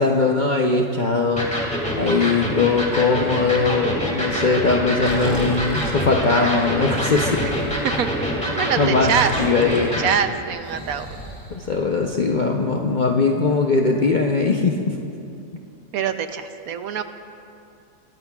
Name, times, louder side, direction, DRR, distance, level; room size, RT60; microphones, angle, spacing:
voice 1, 0.0-1.5 2.0-7.4 8.8-9.1 9.4-10.1 11.5-14.9, left 4 dB, 50° left, 0 dB, 0.5 m, -20 dB
Electric guitar, 1.4-10.1, equal, 5° left, 2.2 m, -25 dB
Breathing, 4.9-12.2, equal, 15° right, 2.1 m, -37 dB
voice 2, 8.6-9.3 10.0-11.1 15.9-17.0, right 8 dB, 70° right, 9 dB, 1.0 m, -24 dB
21.5 x 15.5 x 2.3 m, 2.6 s
omnidirectional pair, 1.7 m